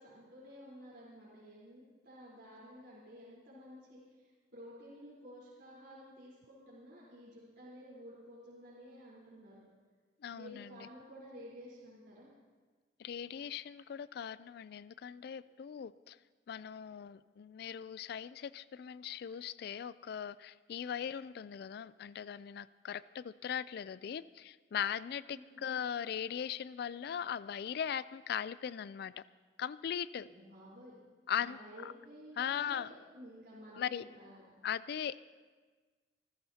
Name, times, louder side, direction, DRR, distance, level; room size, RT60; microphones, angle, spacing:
voice 1, 0.0-9.7 10.3-12.3 25.3-25.6 30.2-31.0 31.4-34.7, equal, 70° right, -8 dB, 3.9 m, -53 dB
voice 2, 10.2-10.9 13.0-16.2 16.5-29.2 29.6-30.3 31.3-31.9 32.4-32.9 33.8-34.0 34.6-35.2, left 8 dB, 60° left, 17 dB, 0.3 m, -39 dB
27.0 x 14.5 x 2.8 m, 1.4 s
head